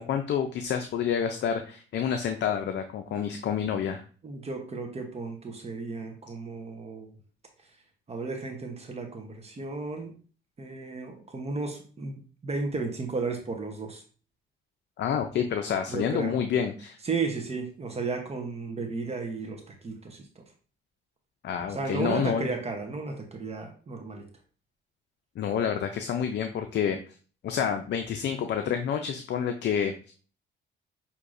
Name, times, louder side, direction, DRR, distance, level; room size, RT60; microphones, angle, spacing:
voice 1, 0.0-4.0 15.0-17.0 21.4-22.5 25.4-27.0 27.4-30.1, left 8 dB, 60° left, 6 dB, 0.5 m, -28 dB
voice 2, 4.2-7.1 8.1-10.1 10.6-14.0 15.9-16.4 17.0-20.2 21.7-24.2, right 4 dB, 30° right, 3 dB, 0.9 m, -34 dB
6.2 x 2.8 x 2.6 m, 0.40 s
cardioid pair, 90°, 20 cm